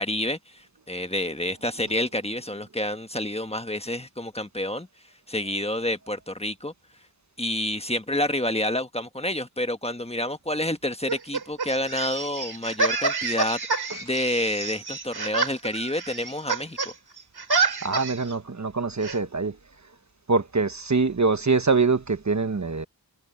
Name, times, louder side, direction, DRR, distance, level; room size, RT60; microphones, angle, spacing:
voice 1, 0.0-4.9 5.3-6.7 7.4-13.6 14.0-16.8, left 1 dB, 15° left, 1.4 m, -28 dB
sound 1, 11.1-16.9 17.2-18.3 19.0-19.2, right 4 dB, 70° right, 2.7 m, -28 dB
voice 2, 17.8-19.6 20.3-22.9, right 4 dB, 45° right, 1.2 m, -24 dB
wide cardioid pair, 55°, 40 cm